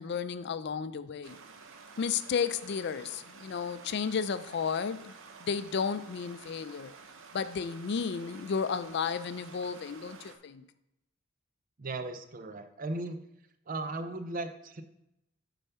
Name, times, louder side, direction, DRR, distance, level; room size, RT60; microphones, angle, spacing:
voice 1, 0.0-1.4 2.0-5.1 5.4-6.9 7.3-10.6, left 6 dB, 60° left, 14 dB, 0.4 m, -33 dB
Stream, 1.2-10.4, right 4 dB, 80° right, 0.7 m, -51 dB
voice 2, 11.8-13.2 13.7-14.8, right 2 dB, 45° right, 9 dB, 0.6 m, -37 dB
6.9 x 4.1 x 5.6 m, 0.85 s
head